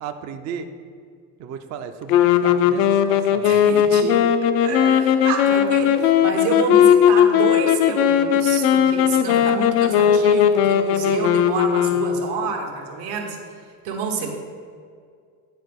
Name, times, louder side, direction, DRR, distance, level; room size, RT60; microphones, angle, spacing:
voice 1, 0.0-0.7 1.4-3.5 9.3-9.6 14.2-14.4, right 7 dB, 35° right, 7 dB, 0.4 m, -35 dB
sound 1, 2.1-12.5, left 9 dB, 75° left, 0.5 m, -17 dB
voice 2, 3.4-4.3 4.6-13.4 13.8-14.4, right 4 dB, 80° right, 2 dB, 1.2 m, -28 dB
9.4 x 3.5 x 3.5 m, 2.2 s
supercardioid pair, 90°, 47 cm